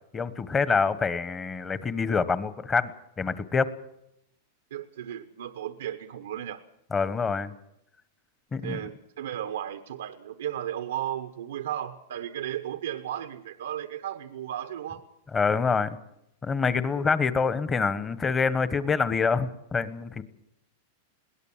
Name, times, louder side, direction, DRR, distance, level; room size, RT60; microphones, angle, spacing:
voice 1, 0.1-2.9 3.2-3.7 6.9-7.5 8.5-8.8 15.3-16.0 16.4-20.2, left 5 dB, 20° left, 14 dB, 1.2 m, -26 dB
voice 2, 4.7-6.6 8.6-15.0, right 11 dB, 85° right, 9 dB, 1.0 m, -35 dB
21.5 x 17.5 x 7.4 m, 0.81 s
hypercardioid pair, 130°, 0 cm